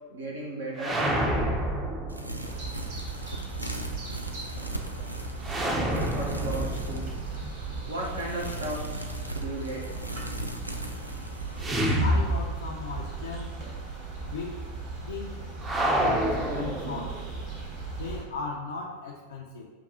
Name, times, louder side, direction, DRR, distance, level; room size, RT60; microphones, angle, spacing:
voice 1, 0.1-1.1 5.9-7.1 7.9-8.9 9.3-9.9, right 1 dB, 70° right, -3 dB, 0.7 m, -35 dB
sound 1, 0.8-2.7 5.4-8.4 11.6-13.0 13.3-13.4 15.6-17.4, right 1 dB, 15° right, 0.5 m, -28 dB
sound 2, 2.1-12.0, equal, 85° right, 0.3 m, -39 dB
sound 3, 2.4-18.2, right 4 dB, 45° right, 1.4 m, -38 dB
voice 2, 12.0-13.6 14.2-14.6 15.1-15.4 16.0-17.3 18.0-19.7, left 4 dB, 65° left, -1 dB, 0.4 m, -37 dB
6.8 x 2.3 x 2.6 m, 1.3 s
figure-of-eight pair, 90°, 0 cm